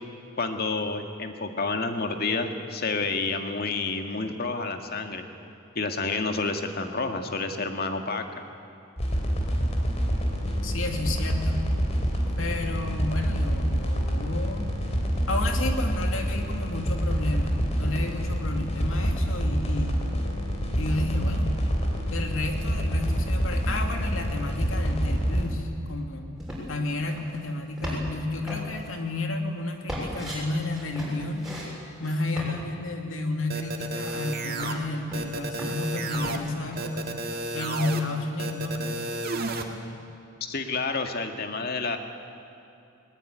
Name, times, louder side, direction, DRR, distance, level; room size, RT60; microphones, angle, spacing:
voice 1, 0.4-5.2 5.8-8.3 40.4-42.0, left 3 dB, 50° left, 5 dB, 1.8 m, -29 dB
sound 1, 9.0-25.5, equal, 35° left, 3.4 m, -27 dB
voice 2, 10.6-11.6 12.4-14.7 15.3-20.0 20.7-21.5 22.1-26.3 26.7-31.4 32.0-37.1 37.5-39.0, left 2 dB, 90° left, 3 dB, 2.7 m, -31 dB
sound 2, 26.4-26.8 27.1-27.4 27.8-28.2 28.5-28.9 29.9-30.4 30.7-31.7 32.0-32.5 33.7-33.8 34.1-34.8 35.1-36.5 36.7-37.1, equal, 5° right, 7.0 m, -36 dB
sound 3, 33.5-34.7 35.1-36.4 36.8-38.0 38.4-39.6, right 2 dB, 50° right, 1.9 m, -32 dB
20.5 x 20.0 x 9.3 m, 2.7 s
head